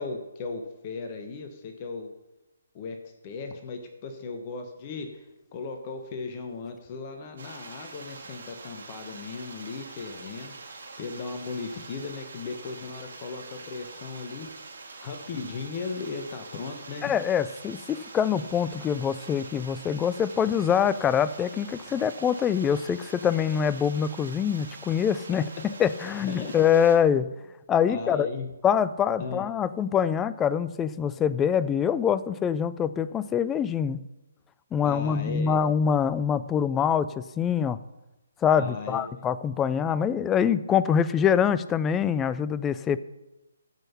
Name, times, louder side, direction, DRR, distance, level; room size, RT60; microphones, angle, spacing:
voice 1, 0.0-2.1 2.7-3.0 3.2-5.2 5.5-10.5 11.0-14.5 15.0-17.1 26.3-26.5 27.9-28.5 29.2-29.4 34.8-35.6 38.6-39.1 42.7-42.9, left 4 dB, 30° left, 5 dB, 1.1 m, -37 dB
sound 1, 7.4-27.0, right 3 dB, 60° right, 2.3 m, -44 dB
voice 2, 17.0-27.3 27.7-28.3 28.6-34.0 34.7-37.8 38.4-43.0, left 8 dB, 15° left, 15 dB, 0.4 m, -24 dB
14.5 x 5.6 x 5.7 m, 0.99 s
figure-of-eight pair, 140°, 0 cm